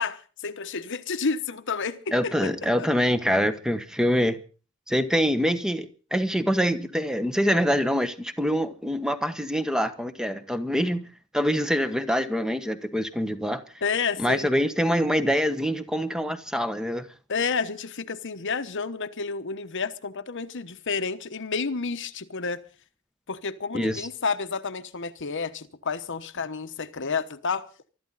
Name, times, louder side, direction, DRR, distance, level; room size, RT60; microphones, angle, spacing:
voice 1, 0.0-2.5 2.8-2.9 13.8-14.5 17.3-22.6 23.3-27.7, left 5 dB, 60° left, 1.1 m, -30 dB
voice 2, 2.1-4.4 4.9-11.1 11.3-13.6 14.2-17.0 23.7-24.0, equal, 5° right, 1.1 m, -25 dB
23.5 x 13.0 x 4.1 m
head